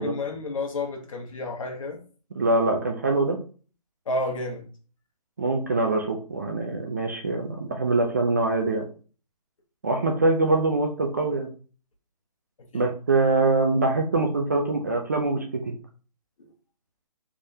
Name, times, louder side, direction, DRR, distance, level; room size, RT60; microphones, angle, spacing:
voice 1, 0.0-2.0 4.1-4.7 12.7-12.9, left 2 dB, 55° left, 1.2 m, -30 dB
voice 2, 2.4-3.4 5.4-8.8 9.8-11.5 12.7-15.6, right 2 dB, 25° right, 0.4 m, -24 dB
3.5 x 3.4 x 2.7 m
hypercardioid pair, 160°, 21 cm